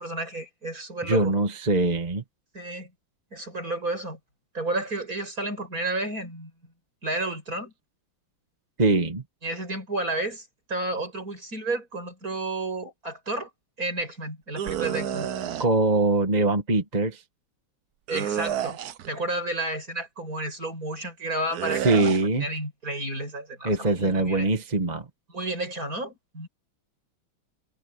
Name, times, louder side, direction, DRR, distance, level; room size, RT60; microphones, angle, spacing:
voice 1, 0.0-1.3 2.5-2.9 3.3-4.2 4.5-6.5 7.0-7.7 9.4-13.5 13.8-15.3 18.1-18.8 19.1-22.1 22.4-24.5 25.3-26.5, right 2 dB, 40° right, 8.5 m, -31 dB
voice 2, 1.1-2.2 8.8-9.2 15.6-17.2 21.8-22.5 23.6-25.0, right 2 dB, 20° right, 1.3 m, -22 dB
sound 1, 14.6-15.7 18.1-19.1 21.5-22.2, right 10 dB, 60° right, 1.0 m, -30 dB
omnidirectional pair, 2.4 m